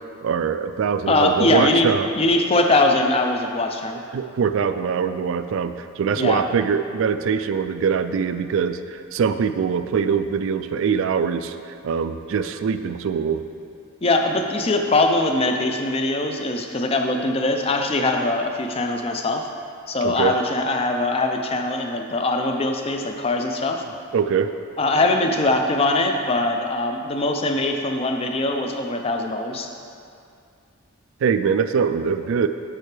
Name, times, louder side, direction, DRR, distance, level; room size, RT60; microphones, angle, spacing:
voice 1, 0.2-2.1 4.1-11.6 11.8-13.4 20.0-20.3 24.1-24.5 31.2-32.5, right 6 dB, 65° right, 10 dB, 0.3 m, -23 dB
voice 2, 1.1-4.0 6.1-6.4 14.0-19.5 19.9-23.8 24.8-29.7, left 2 dB, 25° left, 4 dB, 0.4 m, -22 dB
8.7 x 5.9 x 3.3 m, 2.4 s
head